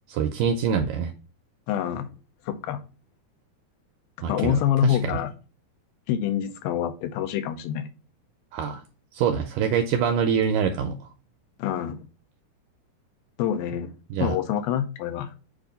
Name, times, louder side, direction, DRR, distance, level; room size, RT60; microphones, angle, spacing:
voice 1, 0.1-1.1 4.2-5.2 8.5-8.8 9.1-11.0 14.1-14.4, right 7 dB, 80° right, 1.9 m, -25 dB
voice 2, 1.7-2.1 2.5-2.8 4.3-5.3 6.1-7.9 11.6-12.0 13.4-13.9 14.2-15.3, left 10 dB, 85° left, 2.4 m, -26 dB
7.2 x 2.6 x 5.1 m
omnidirectional pair, 4.2 m